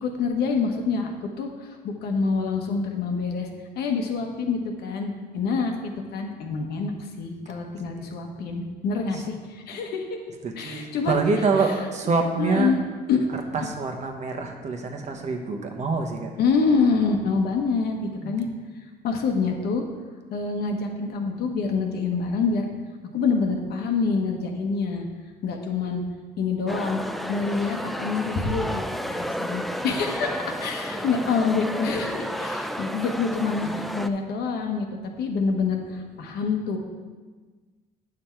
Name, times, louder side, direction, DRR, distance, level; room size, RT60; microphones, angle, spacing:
voice 1, 0.0-3.5 3.7-5.7 6.1-10.2 10.6-11.2 12.4-12.8 13.1-13.2 16.4-18.5 19.0-19.8 20.3-22.7 23.1-25.1 25.4-26.0 26.4-34.9 35.2-36.8, left 4 dB, 70° left, 3 dB, 1.2 m, -26 dB
voice 2, 10.4-12.7 13.3-16.3 18.2-18.5 30.1-30.4 30.8-31.3 33.6-33.8 36.2-36.3, right 4 dB, 45° right, 3 dB, 1.1 m, -27 dB
sound 1, 26.7-34.1, equal, ahead, 0.3 m, -32 dB
8.8 x 6.1 x 4.5 m, 1.4 s
cardioid pair, 110°, 17 cm